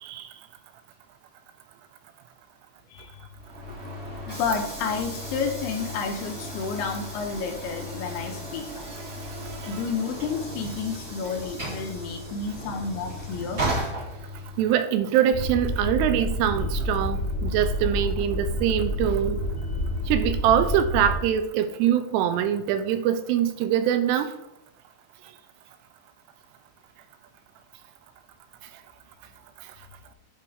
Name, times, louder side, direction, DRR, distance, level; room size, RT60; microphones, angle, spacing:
voice 1, 2.9-3.3 4.3-8.6 9.7-13.6, left 5 dB, 80° left, 3 dB, 2.5 m, -31 dB
Train / Sliding door, 3.3-14.8, equal, 40° right, 1.0 m, -35 dB
voice 2, 14.6-19.4 20.1-24.3, right 10 dB, 85° right, 10 dB, 2.4 m, -24 dB
sound 1, 15.3-21.2, left 1 dB, 45° left, 1.7 m, -28 dB
8.5 x 4.7 x 3.5 m, 0.89 s
omnidirectional pair, 5.3 m